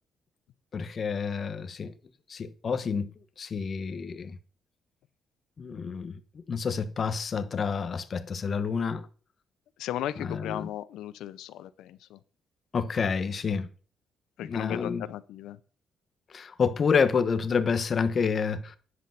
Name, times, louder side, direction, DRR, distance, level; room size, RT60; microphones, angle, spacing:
voice 1, 0.7-1.9 2.3-3.1 3.4-4.4 5.6-6.2 6.5-9.1 10.2-10.7 12.7-13.7 14.4-15.0 16.3-18.8, left 5 dB, 45° left, 1.2 m, -28 dB
voice 2, 9.8-12.2 14.4-15.6, left 12 dB, 85° left, 0.6 m, -36 dB
10.5 x 7.9 x 5.9 m
cardioid pair, 90°, 0 cm